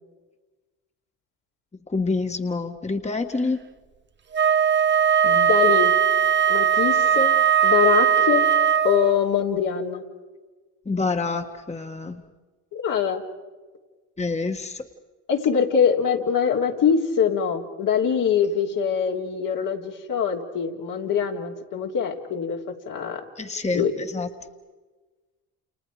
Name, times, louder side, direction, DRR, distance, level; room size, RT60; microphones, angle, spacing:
voice 1, 1.9-3.6 10.9-12.2 14.2-14.8 23.4-23.8 24.1-24.3, left 3 dB, 20° left, 5 dB, 1.7 m, -27 dB
Wind instrument woodwind instrument, 4.3-9.2, right 8 dB, 30° right, 0.9 m, -19 dB
voice 2, 5.2-6.0 6.5-7.3 7.6-8.5 8.8-10.0 12.7-13.2 15.3-23.2 23.7-23.9, left 7 dB, 65° left, 0 dB, 3.3 m, -23 dB
29.5 x 29.0 x 5.0 m, 1.3 s
supercardioid pair, 60°, 35 cm